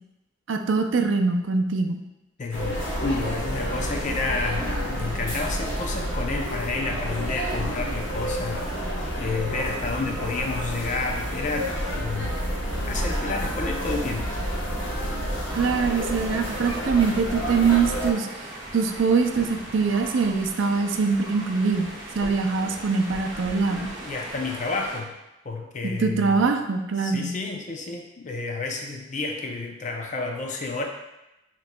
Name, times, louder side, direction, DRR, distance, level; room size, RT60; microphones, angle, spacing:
voice 1, 0.5-2.0 15.6-18.3 18.7-21.9 22.2-23.9 26.0-27.3, right 5 dB, 70° right, 5 dB, 0.4 m, -23 dB
voice 2, 2.4-12.3 12.9-14.3 22.6-22.7 23.7-25.1 25.4-26.4 27.0-30.9, left 3 dB, 35° left, 2 dB, 0.5 m, -30 dB
sound 1, 2.5-18.1, equal, 70° left, 1.0 m, -29 dB
sound 2, 15.5-25.0, right 1 dB, 15° right, 1.4 m, -39 dB
6.7 x 3.0 x 2.2 m, 0.96 s
head